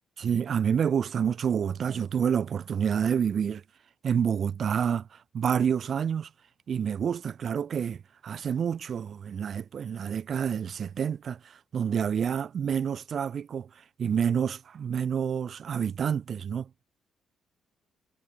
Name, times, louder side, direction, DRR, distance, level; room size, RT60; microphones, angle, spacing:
voice 1, 0.2-3.6 4.0-5.1 5.3-6.3 6.7-13.7 14.0-16.7, right 7 dB, 55° right, 1.0 m, -28 dB
cardioid pair, 90°, 0 cm